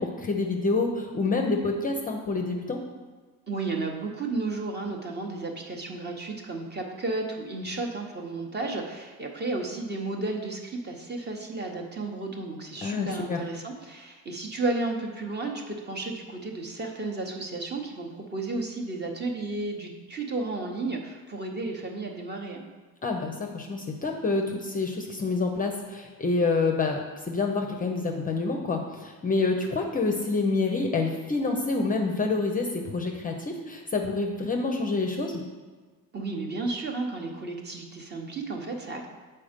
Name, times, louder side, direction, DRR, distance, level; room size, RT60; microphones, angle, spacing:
voice 1, 0.0-2.8 12.8-13.4 23.0-35.4, left 3 dB, 25° left, 3 dB, 0.5 m, -27 dB
voice 2, 3.5-22.6 36.1-39.1, right 3 dB, 30° right, 2 dB, 0.8 m, -33 dB
7.5 x 4.4 x 5.0 m, 1.4 s
cardioid pair, 160°, 36 cm